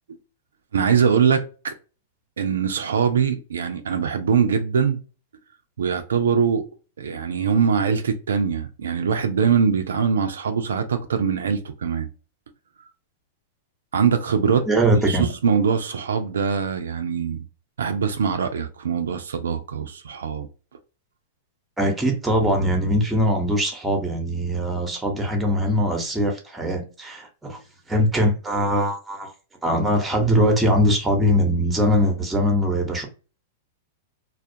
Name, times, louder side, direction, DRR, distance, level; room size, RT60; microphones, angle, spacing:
voice 1, 0.7-1.7 2.4-5.0 5.8-6.6 7.0-12.1 13.9-14.7 15.1-17.4 17.8-20.5, right 6 dB, 80° right, 0.3 m, -22 dB
voice 2, 14.7-15.3 21.8-27.6 27.9-29.3 29.6-33.0, equal, 10° right, 0.8 m, -21 dB
2.3 x 2.1 x 2.5 m
hypercardioid pair, 105°, 0 cm